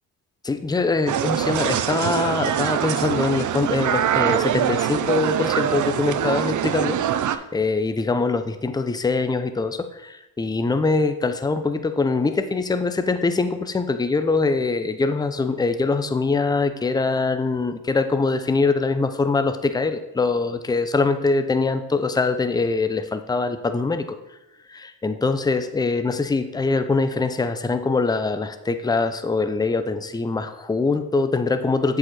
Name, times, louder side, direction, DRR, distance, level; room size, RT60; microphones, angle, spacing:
voice 1, 0.4-24.1 24.7-32.0, left 3 dB, 10° left, 9 dB, 0.6 m, -23 dB
sound 1, 1.1-7.4, right 10 dB, 45° right, 0.5 m, -23 dB
7.5 x 4.8 x 4.3 m, 0.93 s
supercardioid pair, 65°, 45 cm